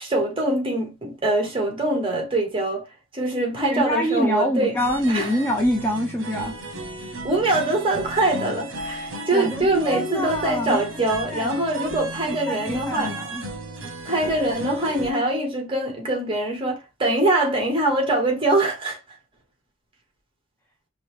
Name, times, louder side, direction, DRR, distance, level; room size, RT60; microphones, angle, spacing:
voice 1, 0.0-2.8 3.1-4.8 5.1-5.3 7.2-13.1 14.0-19.0, right 2 dB, 25° right, 1.3 m, -23 dB
voice 2, 3.7-6.5 9.3-11.0 11.3-11.6 12.2-13.4, equal, 10° left, 0.6 m, -25 dB
sound 1, 4.8-15.1, right 2 dB, 70° right, 0.9 m, -35 dB
5.2 x 2.2 x 3.2 m
head